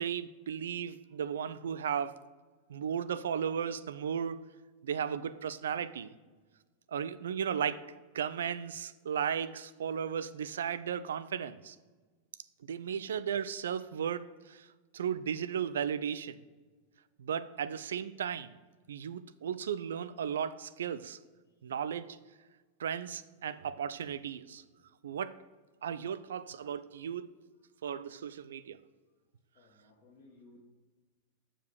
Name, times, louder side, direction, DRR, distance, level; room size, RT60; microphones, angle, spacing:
voice 1, 0.0-2.2 2.7-4.4 4.8-6.1 6.9-7.8 8.1-11.8 12.7-14.7 14.9-16.4 17.2-18.6 18.9-21.2 21.6-22.2 22.8-24.6 25.0-25.3 25.8-27.3 27.8-28.8, right 8 dB, 65° right, 14 dB, 0.4 m, -35 dB
voice 2, 29.5-30.6, left 2 dB, 45° left, -4 dB, 1.4 m, -60 dB
6.8 x 5.0 x 6.4 m, 1.3 s
figure-of-eight pair, 90°, 0 cm